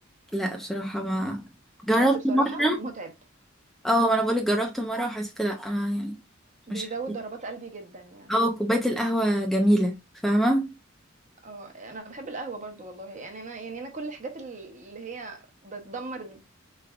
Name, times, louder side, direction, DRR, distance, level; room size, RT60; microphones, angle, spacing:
voice 1, 0.3-1.5 1.8-2.8 3.8-6.2 6.7-6.9 8.3-10.0 10.2-10.7, right 1 dB, ahead, 0.5 m, -24 dB
voice 2, 2.0-3.1 6.7-8.4 11.4-16.4, right 3 dB, 40° right, 1.0 m, -38 dB
4.5 x 3.3 x 2.4 m
head